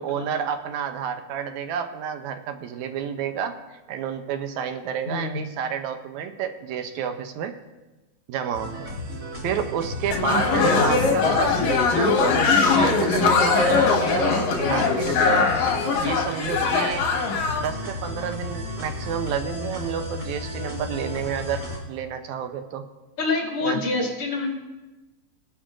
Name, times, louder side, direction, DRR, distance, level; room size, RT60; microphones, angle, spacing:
voice 1, 0.0-3.6 3.9-7.5 8.3-8.9 9.4-15.6 16.0-17.1 17.6-22.9 23.6-23.8, right 8 dB, 85° right, 8 dB, 2.0 m, -30 dB
voice 2, 5.1-5.4 10.1-11.7 23.2-24.5, left 2 dB, 50° left, -2 dB, 3.1 m, -28 dB
sound 1, 8.5-21.8, left 1 dB, 35° right, 2.0 m, -33 dB
sound 2, 10.1-17.6, left 4 dB, 70° left, 2.7 m, -21 dB
18.5 x 11.0 x 2.5 m, 1.1 s
omnidirectional pair, 3.4 m